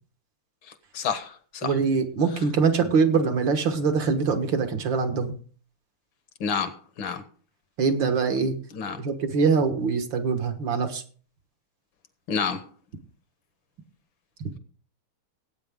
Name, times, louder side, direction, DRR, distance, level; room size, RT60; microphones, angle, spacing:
voice 1, 0.9-1.7 6.4-7.2 8.7-9.0 12.3-12.6, left 6 dB, 65° left, 1.9 m, -29 dB
voice 2, 1.6-5.4 7.8-8.6 9.0-11.0, right 5 dB, 65° right, 2.1 m, -23 dB
17.5 x 8.9 x 3.7 m
omnidirectional pair, 2.3 m